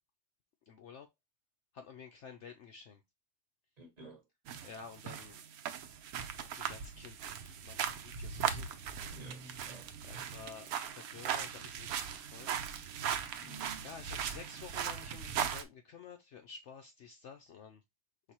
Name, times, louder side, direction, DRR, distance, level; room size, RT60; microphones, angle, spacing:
voice 1, 0.7-1.1 1.7-3.0 4.6-5.4 6.4-9.2 10.0-12.5 13.8-17.8, left 6 dB, 70° left, 0.7 m, -51 dB
voice 2, 3.8-4.2 9.1-10.6 13.4-13.9, right 3 dB, 30° right, 1.1 m, -51 dB
sound 1, 4.5-15.6, right 8 dB, 70° right, 1.1 m, -39 dB
5.0 x 3.5 x 2.8 m
omnidirectional pair, 1.7 m